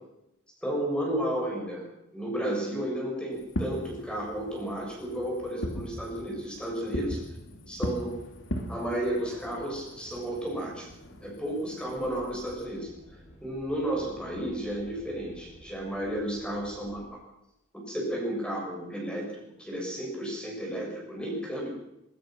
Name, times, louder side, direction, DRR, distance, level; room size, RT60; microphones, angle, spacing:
voice 1, 0.6-7.2 7.7-8.1 8.7-10.9 11.2-12.9 13.4-17.0 17.7-21.7, right 1 dB, 5° left, -2 dB, 7.3 m, -32 dB
Fireworks, 3.4-12.7, equal, 70° left, 3.0 m, -39 dB
sound 1, 11.9-17.0, equal, 35° left, 7.4 m, -52 dB
22.0 x 20.5 x 6.2 m, 0.87 s
head